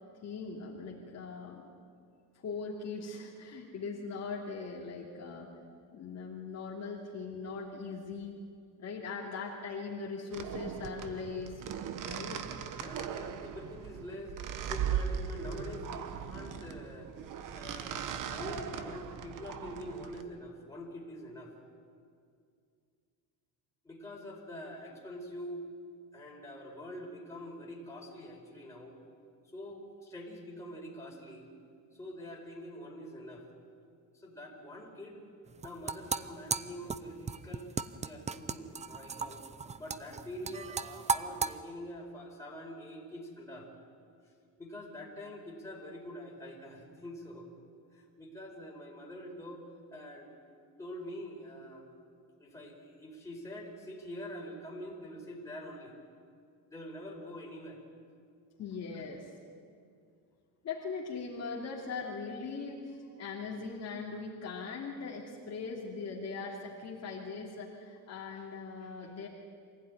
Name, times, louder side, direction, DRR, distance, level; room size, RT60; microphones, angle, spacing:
voice 1, 0.2-1.7 2.3-5.5 5.9-8.4 8.8-11.6 12.0-12.6 58.6-59.3 60.6-69.3, left 4 dB, 40° left, -3 dB, 3.0 m, -40 dB
sound 1, 10.3-20.2, right 8 dB, 50° right, 1.3 m, -39 dB
voice 2, 12.7-14.4 14.6-17.1 17.5-21.5 23.8-25.7 26.1-29.0 29.4-31.5 31.9-33.5 34.1-35.2 35.6-39.4 39.8-43.7 44.6-47.5 47.9-49.6 49.9-50.3 50.8-51.9 52.4-55.9 56.7-57.8 58.9-59.0, equal, 10° left, -3 dB, 4.6 m, -45 dB
sound 2, 35.5-41.5, right 5 dB, 20° right, 0.5 m, -36 dB
25.0 x 16.0 x 9.7 m, 2.3 s
cardioid pair, 150°, 39 cm